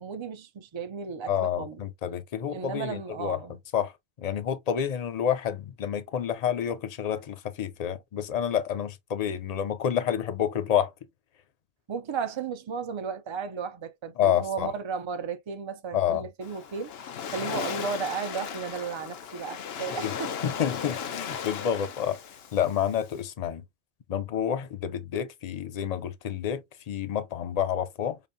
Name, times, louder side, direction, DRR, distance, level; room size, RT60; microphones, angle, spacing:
voice 1, 0.0-1.8 2.5-3.6 11.9-16.9 17.3-20.3, right 6 dB, 40° right, 0.5 m, -34 dB
voice 2, 1.3-3.4 3.7-3.9 4.2-10.9 14.2-14.7 15.9-16.3 19.9-20.1 20.4-22.2 22.5-23.6 24.1-28.2, left 9 dB, 50° left, 0.6 m, -29 dB
Waves surf, 16.4-23.2, left 7 dB, 80° left, 0.9 m, -36 dB
4.9 x 2.6 x 2.6 m
omnidirectional pair, 1.0 m